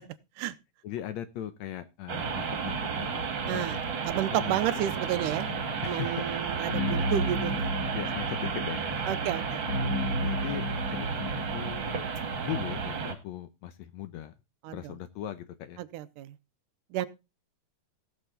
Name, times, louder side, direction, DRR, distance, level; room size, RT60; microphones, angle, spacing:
voice 1, 0.8-3.8 4.4-4.6 5.8-6.3 6.6-6.8 7.9-9.3 10.2-11.9 12.4-14.3 14.7-15.8, left 11 dB, 70° left, 12 dB, 1.8 m, -39 dB
sound 1, 2.1-13.1, right 5 dB, 45° right, 2.0 m, -32 dB
voice 2, 3.5-3.8 4.0-5.5 5.8-7.7 9.1-9.6 14.6-14.8 15.9-16.3 16.9-17.1, right 12 dB, 80° right, 15 dB, 2.2 m, -31 dB
sound 2, 5.5-11.7, left 1 dB, 50° left, 2.5 m, -34 dB
17.5 x 6.7 x 3.9 m, 0.27 s
omnidirectional pair, 3.8 m